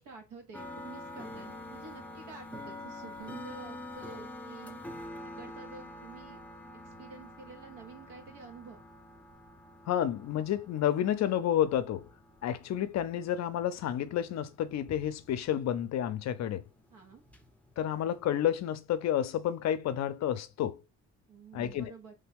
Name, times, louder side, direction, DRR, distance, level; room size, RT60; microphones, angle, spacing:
voice 1, 0.0-4.8 5.2-6.4 6.8-8.8 16.9-17.2 21.3-22.1, right 4 dB, 85° right, 1.1 m, -49 dB
sound 1, 0.5-18.4, left 1 dB, 5° left, 0.5 m, -47 dB
voice 2, 9.9-12.1 12.4-16.6 17.8-20.8 21.5-21.9, left 10 dB, 60° left, 0.5 m, -30 dB
3.3 x 2.2 x 3.4 m
cardioid pair, 90°, 30 cm